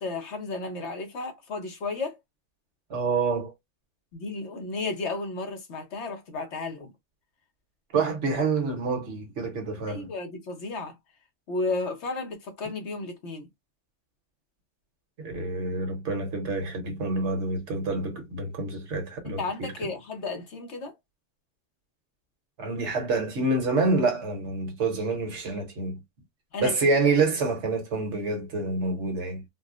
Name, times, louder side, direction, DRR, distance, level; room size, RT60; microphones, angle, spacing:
voice 1, 0.0-2.2 4.1-6.9 9.9-11.0 11.5-13.5 19.2-20.9 26.5-26.7, left 3 dB, 70° left, 1.3 m, -33 dB
voice 2, 2.9-3.5 7.9-10.1 15.2-19.7 22.6-26.0 26.6-29.4, right 3 dB, 75° right, 1.3 m, -27 dB
4.0 x 2.0 x 2.4 m
omnidirectional pair, 1.2 m